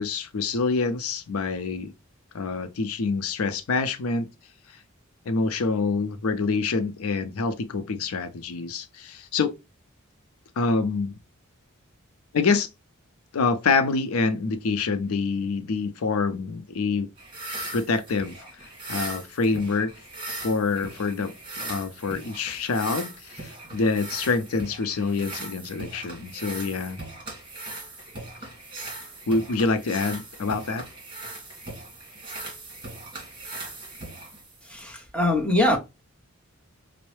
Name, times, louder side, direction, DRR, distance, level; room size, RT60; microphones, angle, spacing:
voice 1, 0.0-1.9 2.3-4.3 5.3-9.5 10.6-11.1 12.3-12.7 13.3-17.1 17.7-18.4 18.9-19.9 20.4-21.3 21.6-27.0 29.3-30.8, left 4 dB, 80° left, 0.5 m, -26 dB
sound 1, 17.2-34.8, right 2 dB, 25° right, 1.5 m, -39 dB
voice 2, 34.6-35.8, left 1 dB, 5° left, 0.8 m, -23 dB
5.3 x 2.0 x 3.1 m
head